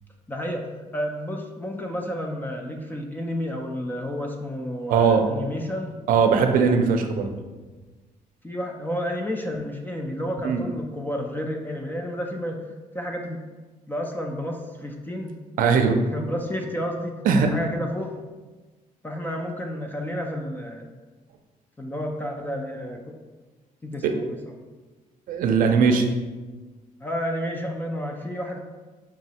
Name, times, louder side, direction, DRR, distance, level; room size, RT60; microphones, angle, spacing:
voice 1, 0.3-0.7 0.9-6.0 8.4-12.6 12.9-13.4 13.9-15.4 16.1-18.2 19.0-20.9 21.8-23.0 23.8-24.5 27.0-28.6, equal, 15° left, 2 dB, 0.4 m, -31 dB
voice 2, 4.9-5.2 6.1-7.3 10.4-10.6 15.6-16.0 17.2-17.5 24.0-24.1 25.3-26.0, right 5 dB, 80° right, 5 dB, 0.5 m, -19 dB
4.8 x 3.0 x 2.8 m, 1.3 s
cardioid pair, 140°, 14 cm